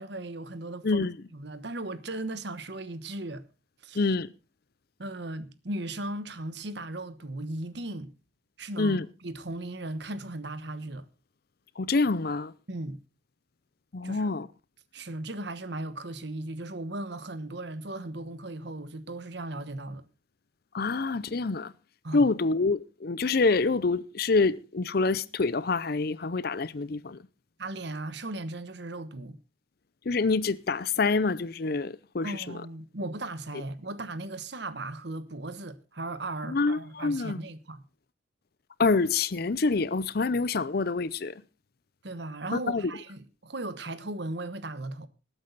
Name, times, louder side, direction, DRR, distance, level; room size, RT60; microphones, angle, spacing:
voice 1, 0.0-1.1 1.3-3.4 3.8-4.1 5.0-8.1 8.6-11.1 12.7-13.0 14.0-14.3 14.9-20.0 22.0-22.3 27.6-29.4 32.2-37.8 42.0-45.1, right 2 dB, 55° right, 1.2 m, -37 dB
voice 2, 4.0-4.3 8.8-9.1 11.8-12.5 13.9-14.5 20.7-21.7 22.1-27.2 30.1-32.3 36.5-37.4 38.8-41.3 42.5-42.9, left 3 dB, 50° left, 0.6 m, -26 dB
19.5 x 8.8 x 4.0 m
head